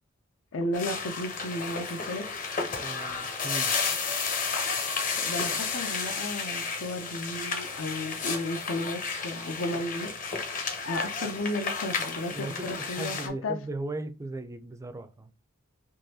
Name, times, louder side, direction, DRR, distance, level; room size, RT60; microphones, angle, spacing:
voice 1, 0.5-2.4 5.2-10.1 10.9-13.6, left 1 dB, 75° left, 0.6 m, -34 dB
sound 1, 0.7-13.3, left 5 dB, 40° left, 0.8 m, -32 dB
voice 2, 2.7-3.8 12.3-15.3, right 2 dB, 15° right, 0.4 m, -37 dB
3.8 x 3.0 x 2.7 m
head